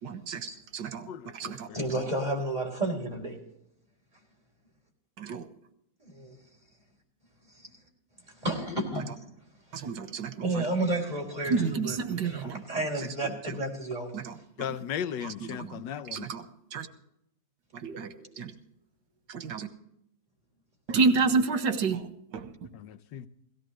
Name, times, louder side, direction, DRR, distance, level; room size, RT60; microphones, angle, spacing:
voice 1, 0.0-1.7 2.0-2.1 5.2-5.5 8.9-9.1 9.7-10.7 11.4-13.6 14.1-14.8 15.2-16.9 17.7-18.5 19.3-19.7 20.9-22.7, right 4 dB, 90° right, 1.8 m, -31 dB
voice 2, 1.7-3.4 6.0-6.4 7.6-7.7 8.4-9.1 10.4-12.0 12.2-14.1, right 2 dB, 25° right, 4.4 m, -31 dB
voice 3, 14.6-16.2 22.8-23.3, left 9 dB, 85° left, 1.4 m, -35 dB
17.0 x 17.0 x 3.2 m
omnidirectional pair, 1.9 m